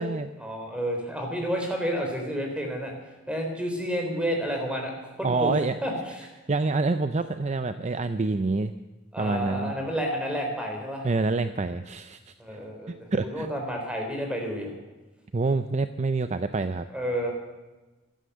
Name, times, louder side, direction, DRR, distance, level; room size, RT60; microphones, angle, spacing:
voice 1, 0.4-2.9 3.3-5.5 5.8-6.3 9.1-11.1 12.4-14.7 16.9-17.3, equal, 5° right, 2 dB, 3.7 m, -30 dB
voice 2, 5.2-5.8 6.5-8.7 9.2-9.7 11.0-12.6 12.9-13.5 15.3-16.9, right 3 dB, 35° right, 11 dB, 0.5 m, -27 dB
15.5 x 13.0 x 6.8 m, 1.1 s
head